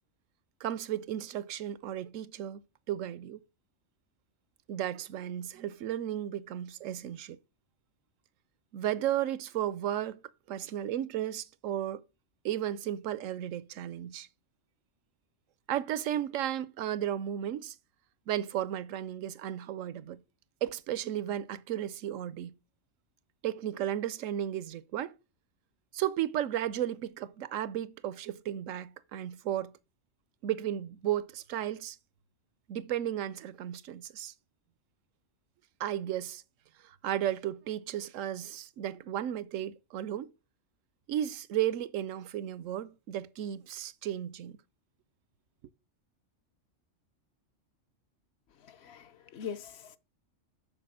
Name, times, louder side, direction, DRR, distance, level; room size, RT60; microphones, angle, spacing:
voice 1, 0.6-2.6 2.9-3.4 4.7-7.4 8.7-10.2 10.5-12.0 12.4-14.3 15.7-17.8 18.3-20.2 20.6-22.5 23.4-25.1 25.9-29.7 30.4-32.0 32.7-34.3 35.8-36.4 36.8-40.3 41.1-44.6, right 11 dB, 90° right, 1.0 m, -34 dB
voice 2, 48.6-50.0, left 7 dB, 65° left, 0.8 m, -42 dB
6.8 x 6.4 x 6.1 m
omnidirectional pair, 1.3 m